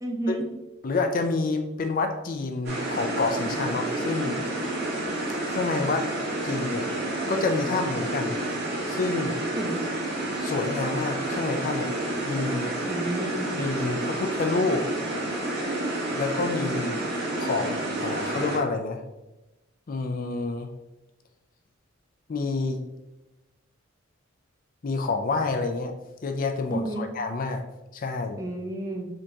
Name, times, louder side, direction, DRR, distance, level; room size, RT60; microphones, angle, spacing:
voice 1, 0.0-0.5 9.5-9.8 12.9-13.6 26.7-27.1 28.4-29.1, right 1 dB, 15° right, 0 dB, 0.7 m, -31 dB
voice 2, 0.8-4.4 5.4-6.1 6.4-6.8 7.3-8.4 8.9-9.4 10.4-11.9 12.2-12.7 13.5-14.9 16.1-17.0 17.4-19.0 19.9-20.7 22.3-22.8 24.8-25.9 26.2-27.6 27.9-28.4, left 3 dB, 40° left, 5 dB, 0.4 m, -28 dB
sound 1, 2.6-18.6, right 1 dB, 50° right, 1.6 m, -30 dB
5.1 x 2.9 x 3.5 m, 1.0 s
head